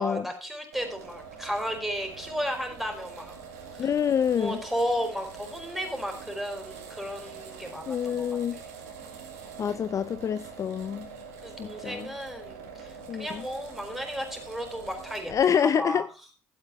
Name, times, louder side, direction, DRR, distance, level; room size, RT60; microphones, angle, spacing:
voice 1, 0.0-3.4 3.7-3.9 4.4-8.3 11.4-15.3 15.8-16.0, equal, ahead, 4.1 m, -34 dB
sound 1, 0.7-15.4, right 6 dB, 80° right, 1.9 m, -44 dB
voice 2, 3.8-4.6 7.9-8.6 9.6-11.1 11.6-12.1 13.1-13.5 15.3-16.0, left 8 dB, 40° left, 0.5 m, -27 dB
12.5 x 8.0 x 4.3 m
hypercardioid pair, 50°, 8 cm